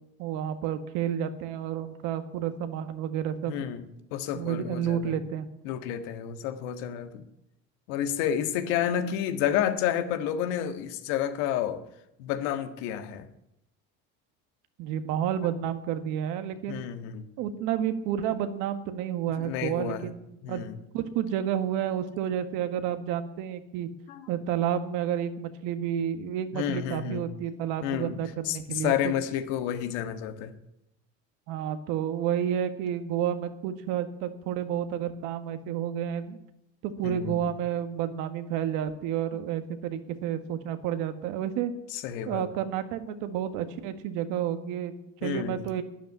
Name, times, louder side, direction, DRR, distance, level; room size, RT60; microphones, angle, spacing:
voice 1, 0.2-3.6 4.3-5.5 14.8-16.8 17.4-20.6 20.9-23.9 24.3-28.9 31.5-36.4 36.8-41.7 42.2-44.9 45.2-45.8, right 9 dB, 75° right, 9 dB, 1.7 m, -30 dB
voice 2, 3.5-3.8 4.1-5.2 5.6-7.2 7.9-11.8 12.2-13.3 16.7-17.2 19.4-20.1 20.4-20.8 24.1-24.3 26.5-27.3 27.8-30.5 37.0-37.4 41.9-42.4 45.2-45.6, left 10 dB, 80° left, 8 dB, 1.7 m, -30 dB
12.5 x 9.8 x 9.8 m, 0.85 s
supercardioid pair, 110°, 32 cm